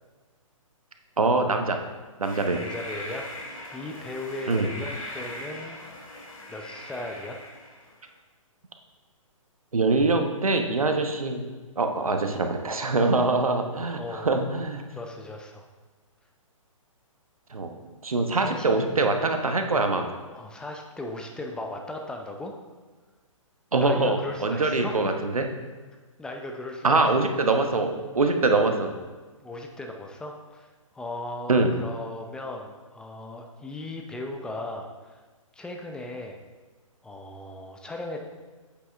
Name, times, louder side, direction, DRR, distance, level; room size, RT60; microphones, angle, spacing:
voice 1, 1.2-1.8 2.2-2.6 4.5-4.7 9.7-11.5 11.8-14.8 17.5-20.1 23.7-25.5 26.8-28.9 31.5-31.7, right 3 dB, 90° right, 5 dB, 1.0 m, -24 dB
sound 1, 2.2-8.0, left 1 dB, 75° left, 2.0 m, -40 dB
voice 2, 2.5-5.8 6.5-7.4 13.9-14.3 14.9-15.6 18.3-18.7 20.1-22.6 23.8-25.0 26.2-27.3 29.4-35.2 35.5-36.4 37.0-38.2, left 2 dB, 5° left, 2 dB, 0.5 m, -37 dB
8.0 x 6.1 x 3.4 m, 1.3 s
hypercardioid pair, 135°, 18 cm